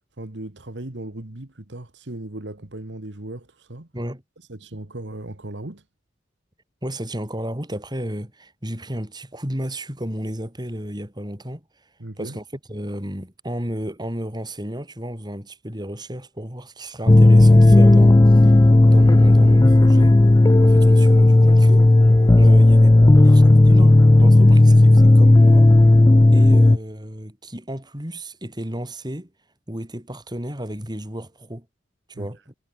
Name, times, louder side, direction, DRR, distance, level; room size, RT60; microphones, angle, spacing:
voice 1, 0.2-3.9 4.5-5.8 12.0-12.4 32.1-32.3, right 1 dB, 75° right, 2.0 m, -36 dB
voice 2, 6.8-11.6 12.2-20.2 20.6-21.9 22.4-23.0 23.2-25.7 26.3-29.3 29.7-31.7 32.1-32.5, right 1 dB, 25° right, 6.0 m, -32 dB
sound 1, 17.1-26.8, left 2 dB, 20° left, 0.4 m, -12 dB
head